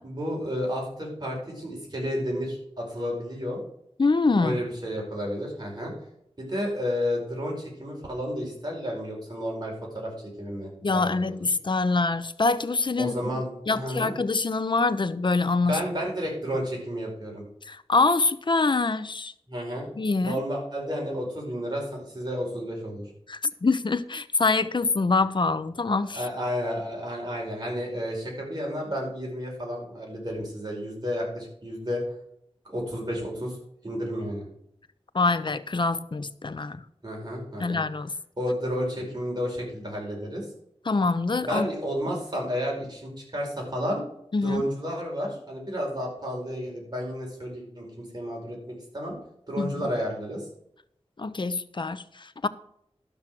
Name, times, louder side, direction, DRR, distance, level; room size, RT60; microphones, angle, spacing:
voice 1, 0.0-3.6 4.4-5.9 6.4-11.4 13.0-14.1 15.5-17.4 19.5-19.9 20.2-23.1 26.1-32.0 32.6-33.6 33.8-34.5 37.0-37.8 38.4-40.5 41.4-44.0 44.4-47.9 48.1-49.2 49.5-50.5, equal, 40° right, -2 dB, 5.1 m, -31 dB
voice 2, 4.0-4.6 10.8-15.8 17.6-19.3 20.0-20.4 23.3-26.3 35.1-36.8 37.6-38.1 40.8-41.7 44.3-44.6 49.6-49.9 51.2-52.5, left 3 dB, 45° left, 13 dB, 0.7 m, -25 dB
12.0 x 6.3 x 6.1 m, 0.73 s
wide cardioid pair, 70°, 11 cm